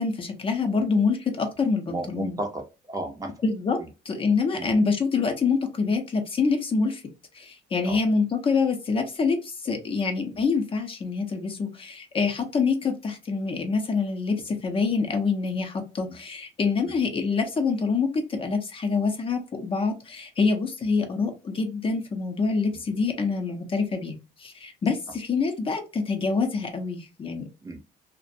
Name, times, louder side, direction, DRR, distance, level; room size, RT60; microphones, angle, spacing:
voice 1, 0.0-2.4 3.4-3.8 4.1-7.0 7.3-27.5, left 4 dB, 35° left, 5 dB, 0.6 m, -26 dB
voice 2, 1.9-3.5 3.8-3.9 4.5-4.7 7.8-8.0 16.8-16.9 27.6-27.8, right 1 dB, 20° right, 3 dB, 0.5 m, -34 dB
2.4 x 2.1 x 2.6 m, 0.29 s
cardioid pair, 110°, 17 cm